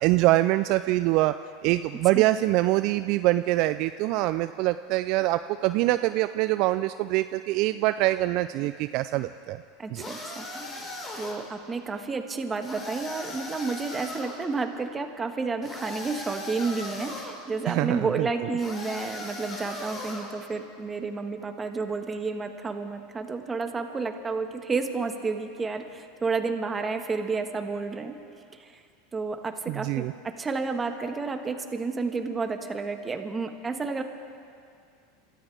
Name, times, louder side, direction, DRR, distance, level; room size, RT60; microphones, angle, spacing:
voice 1, 0.0-1.4 1.6-9.6 9.9-10.0 17.7-18.3 29.7-30.1, right 17 dB, 55° right, 12 dB, 0.3 m, -24 dB
voice 2, 9.8-10.9 11.1-28.2 28.5-28.8 29.1-30.1 30.4-34.0, right 4 dB, 20° right, 6 dB, 1.4 m, -31 dB
sound 1, 10.0-11.5 12.6-14.4 15.6-17.4 18.6-20.4, left 2 dB, 30° left, 3.3 m, -38 dB
29.0 x 14.0 x 3.5 m, 2.3 s
hypercardioid pair, 95°, 0 cm